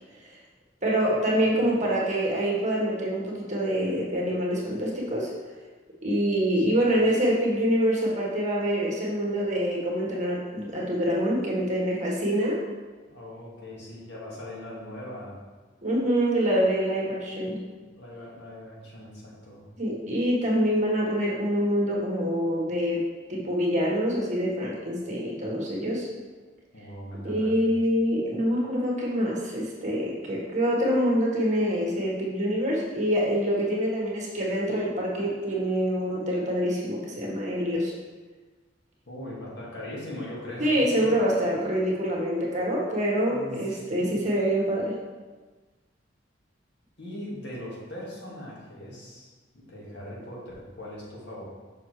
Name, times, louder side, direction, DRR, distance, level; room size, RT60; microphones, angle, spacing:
voice 1, 0.8-5.3 6.0-12.6 15.8-17.6 19.8-26.1 27.2-37.9 40.6-44.9, equal, 40° right, -4 dB, 1.5 m, -25 dB
voice 2, 13.1-15.4 17.9-19.7 26.7-27.7 39.1-41.1 43.3-44.1 47.0-51.4, left 1 dB, 65° left, -5 dB, 1.8 m, -40 dB
6.6 x 5.6 x 3.2 m, 1.4 s
head